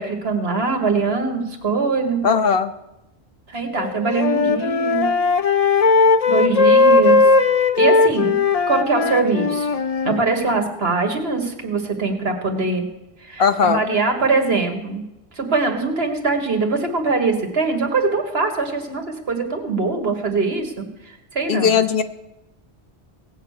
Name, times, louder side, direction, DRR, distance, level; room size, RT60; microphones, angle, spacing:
voice 1, 0.0-2.2 3.5-5.1 6.0-7.2 7.8-8.4 8.7-9.7 10.0-12.9 13.2-15.0 15.3-21.8, right 4 dB, 70° right, 4 dB, 1.9 m, -22 dB
voice 2, 2.2-2.7 13.4-13.8 21.5-22.0, left 6 dB, 65° left, 10 dB, 0.9 m, -18 dB
Wind instrument woodwind instrument, 3.8-10.2, left 4 dB, 40° left, 0.6 m, -17 dB
17.5 x 8.1 x 6.6 m, 0.93 s
omnidirectional pair, 1.1 m